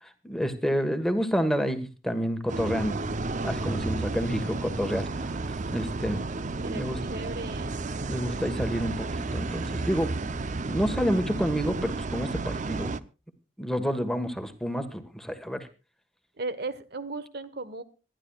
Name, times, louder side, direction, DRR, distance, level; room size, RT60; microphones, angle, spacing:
voice 1, 0.0-3.0 3.4-5.3 5.7-6.3 6.7-7.0 8.1-10.1 10.7-12.9 13.6-15.7, equal, ahead, 7 dB, 1.4 m, -29 dB
sound 1, 2.5-13.0, right 3 dB, 40° right, 0.6 m, -32 dB
voice 2, 4.1-4.8 6.6-7.7 16.4-17.8, right 3 dB, 60° right, 12 dB, 1.2 m, -37 dB
26.0 x 11.5 x 2.3 m, 0.31 s
head